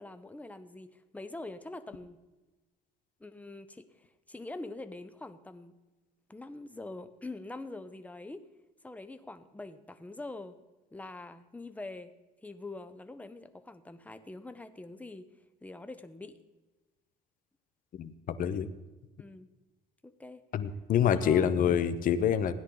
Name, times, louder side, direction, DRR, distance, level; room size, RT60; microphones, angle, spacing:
voice 1, 0.0-2.2 3.2-5.7 6.3-8.5 8.8-10.6 10.9-12.1 12.4-15.3 15.6-16.4 19.2-19.5 20.0-20.4 21.1-21.5, left 2 dB, 10° left, 11 dB, 0.8 m, -44 dB
voice 2, 18.0-18.7 20.5-22.5, left 8 dB, 55° left, 12 dB, 0.9 m, -27 dB
16.5 x 10.0 x 3.9 m, 1.2 s
cardioid pair, 110°, 17 cm